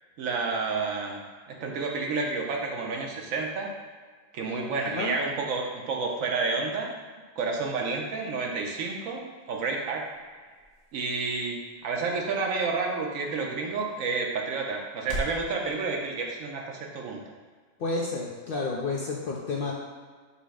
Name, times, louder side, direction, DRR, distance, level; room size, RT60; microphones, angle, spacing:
voice 1, 0.2-1.2 1.5-3.7 4.3-6.9 7.4-10.1 10.9-17.2, right 4 dB, 85° right, 1 dB, 1.1 m, -30 dB
sound 1, 9.2-15.5, right 1 dB, 45° right, 1.0 m, -43 dB
voice 2, 17.8-19.7, left 3 dB, 60° left, -2 dB, 0.6 m, -30 dB
5.3 x 2.0 x 4.8 m, 1.5 s
omnidirectional pair, 1.4 m